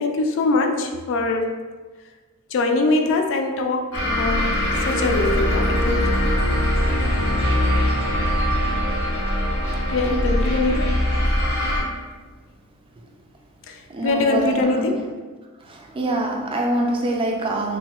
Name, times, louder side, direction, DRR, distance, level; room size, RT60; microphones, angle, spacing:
voice 1, 0.0-1.5 2.5-4.5 4.9-6.2 9.9-10.9 13.7-13.8 14.0-15.0, left 3 dB, 60° left, 0.4 m, -22 dB
sound 1, 3.9-11.8, equal, 85° left, 0.9 m, -21 dB
voice 2, 10.0-10.5 13.9-15.0 15.6-17.8, right 1 dB, 25° right, 0.3 m, -25 dB
3.1 x 2.2 x 2.9 m
head